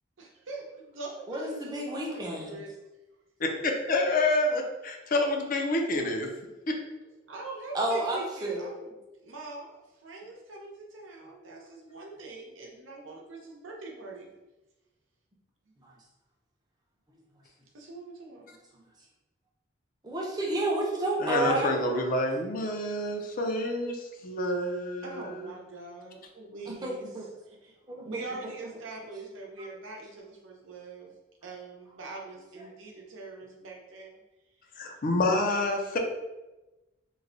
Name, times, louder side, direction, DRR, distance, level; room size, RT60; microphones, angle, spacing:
voice 1, 0.2-2.7 7.3-8.9 9.2-14.3 17.7-18.4 25.0-27.1 27.5-27.7 28.0-31.1 31.4-34.2, right 3 dB, 90° right, -1 dB, 0.8 m, -43 dB
voice 2, 1.3-2.6 7.7-8.7 15.8-15.9 18.7-18.9 20.0-21.8 26.7-27.3 27.9-28.5 29.6-29.7, right 1 dB, 20° right, -2 dB, 0.6 m, -31 dB
voice 3, 3.4-6.3 6.7-6.8 21.2-25.5 34.8-36.0, left 2 dB, 45° left, 3 dB, 0.5 m, -28 dB
3.1 x 2.2 x 3.8 m, 1.1 s
head